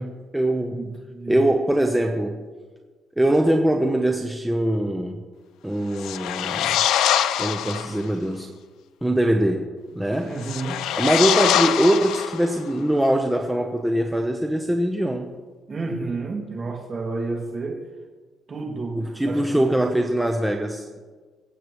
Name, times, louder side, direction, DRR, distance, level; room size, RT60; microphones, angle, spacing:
voice 1, 0.0-0.8 1.3-2.4 3.2-5.2 5.6-6.8 7.4-8.5 9.0-10.4 10.9-15.3 19.0-20.9, right 1 dB, 5° right, 3 dB, 0.8 m, -22 dB
voice 2, 0.7-1.4 10.2-10.9 15.7-17.8 18.5-19.8, right 3 dB, 35° right, 1 dB, 2.2 m, -31 dB
sound 1, 5.9-8.0 10.4-12.7, left 10 dB, 80° left, 0.6 m, -23 dB
23.5 x 8.1 x 3.1 m, 1.4 s
cardioid pair, 105°, 0 cm